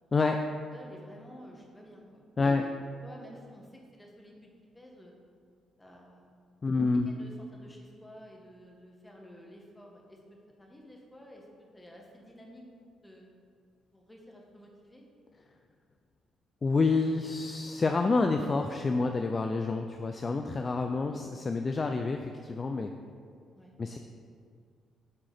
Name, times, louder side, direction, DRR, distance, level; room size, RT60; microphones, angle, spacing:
voice 1, 0.7-2.7 3.0-4.5 4.7-5.1 5.8-6.3 7.0-12.6 13.0-13.3 13.9-15.0 23.5-23.7, equal, 15° left, -1 dB, 1.5 m, -51 dB
voice 2, 6.6-7.1 16.6-22.9 23.8-24.0, left 3 dB, 35° left, 5 dB, 0.4 m, -28 dB
10.0 x 3.7 x 5.0 m, 2.1 s
cardioid pair, 90°, 0 cm